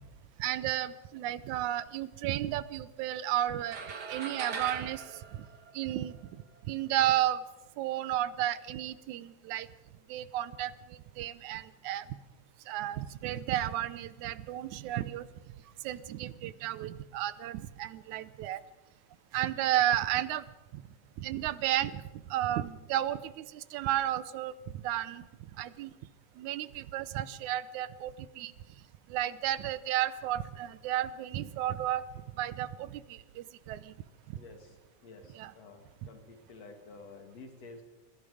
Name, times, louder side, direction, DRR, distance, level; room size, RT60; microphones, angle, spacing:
voice 1, 0.4-3.8 4.1-5.0 5.3-5.4 5.7-6.2 6.7-7.4 7.8-9.7 10.1-10.7 11.2-12.1 12.7-15.2 15.8-18.6 19.3-20.5 20.7-20.8 21.2-22.0 22.3-25.2 25.6-25.9 26.4-28.5 29.1-32.0 32.4-33.9 34.3-34.4 35.4-35.5, right 13 dB, 80° right, 16 dB, 2.2 m, -32 dB
sound 1, 3.7-6.3, right 5 dB, 40° right, 1.9 m, -40 dB
voice 2, 34.3-37.8, left 3 dB, 60° left, 6 dB, 3.4 m, -51 dB
27.0 x 21.0 x 5.0 m, 1.1 s
omnidirectional pair, 3.4 m